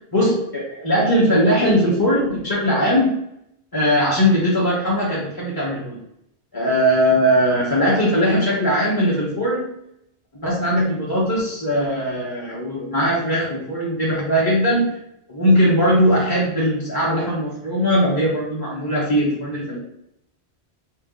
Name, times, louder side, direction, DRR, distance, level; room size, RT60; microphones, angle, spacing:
voice 1, 0.1-3.2 3.7-6.0 6.5-9.7 10.4-15.0 15.3-19.8, equal, 25° left, -6 dB, 0.8 m, -19 dB
3.6 x 2.8 x 3.7 m, 0.79 s
omnidirectional pair, 1.1 m